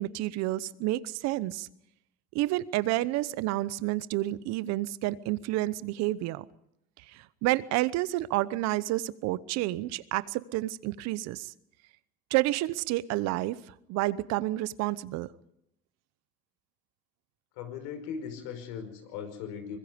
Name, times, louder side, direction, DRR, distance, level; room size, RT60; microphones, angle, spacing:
voice 1, 0.0-1.7 2.3-6.4 7.1-11.5 12.3-13.6 13.9-15.3, right 17 dB, 60° right, 18 dB, 0.9 m, -29 dB
voice 2, 17.6-19.8, left 7 dB, 80° left, 8 dB, 5.2 m, -38 dB
24.5 x 21.0 x 5.2 m, 0.78 s
supercardioid pair, 110°, 30 cm